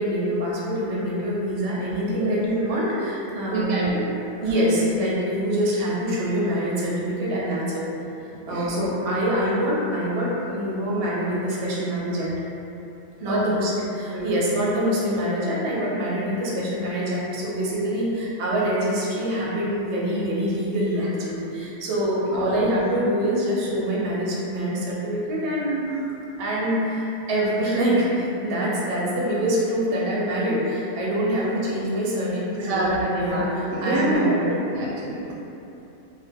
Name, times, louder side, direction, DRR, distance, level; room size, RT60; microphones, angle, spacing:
voice 1, 0.0-3.9 4.4-7.8 8.5-12.3 13.2-34.5, equal, 65° right, -6 dB, 0.8 m, -25 dB
voice 2, 3.5-4.1 8.5-8.7 13.3-13.5 14.1-14.3 22.4-22.5 32.7-34.2 34.7-35.3, right 1 dB, 90° right, -5 dB, 1.0 m, -26 dB
2.4 x 2.2 x 2.6 m, 2.9 s
omnidirectional pair, 1.4 m